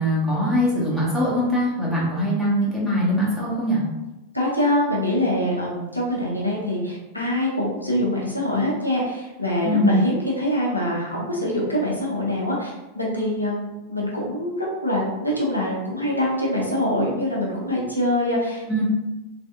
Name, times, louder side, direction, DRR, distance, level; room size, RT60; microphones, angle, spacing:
voice 1, 0.0-3.8 9.6-10.0 18.7-18.8, equal, ahead, -8 dB, 1.1 m, -22 dB
voice 2, 4.3-18.8, left 1 dB, 85° left, -4 dB, 0.6 m, -24 dB
3.2 x 2.5 x 2.4 m, 1.0 s
figure-of-eight pair, 90°, 0 cm